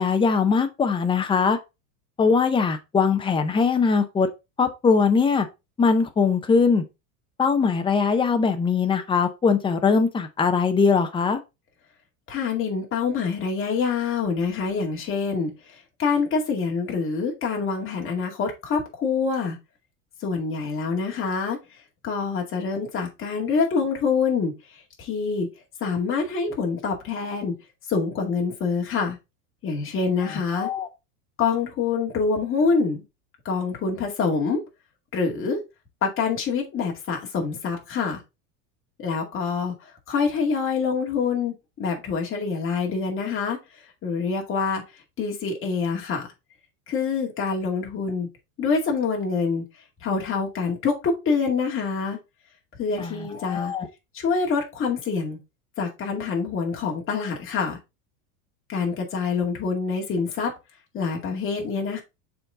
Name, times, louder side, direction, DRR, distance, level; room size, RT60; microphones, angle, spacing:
voice 1, 0.0-1.6 2.2-4.3 4.6-5.5 5.8-6.8 7.4-11.4 30.5-30.9 53.0-53.9, left 5 dB, 10° left, 0.5 m, -21 dB
voice 2, 12.3-19.6 20.2-21.6 22.0-25.5 25.8-27.5 27.9-29.2 29.6-30.7 31.4-33.0 33.4-34.6 35.1-35.6 36.0-38.2 39.0-44.8 45.2-46.3 46.9-48.3 48.6-49.6 50.0-52.2 52.8-53.7 54.1-55.4 55.8-57.8 58.7-60.5 60.9-62.0, left 5 dB, 25° left, 2.1 m, -26 dB
6.8 x 4.1 x 3.6 m
supercardioid pair, 145°, 46 cm